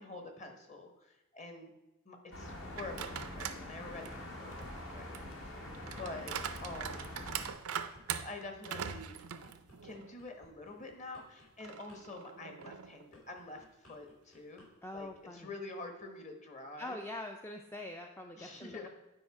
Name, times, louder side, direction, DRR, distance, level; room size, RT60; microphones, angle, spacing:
voice 1, 0.0-1.7 2.0-5.6 6.0-7.2 8.2-9.2 9.8-14.6 14.9-17.0 18.4-18.9, left 2 dB, 35° left, 4 dB, 1.0 m, -47 dB
sound 1, 2.3-7.5, left 1 dB, 60° left, 1.3 m, -45 dB
sound 2, 2.7-3.6 4.1-10.1 10.5-10.6 11.6-13.1, right 8 dB, 90° right, 0.5 m, -42 dB
sound 3, 7.5-8.1 8.5-14.7 14.9-15.2, left 1 dB, 80° left, 3.1 m, -61 dB
voice 2, 14.8-15.5 16.8-18.9, left 1 dB, 10° left, 3 dB, 0.3 m, -44 dB
8.8 x 4.9 x 4.7 m, 1.0 s
head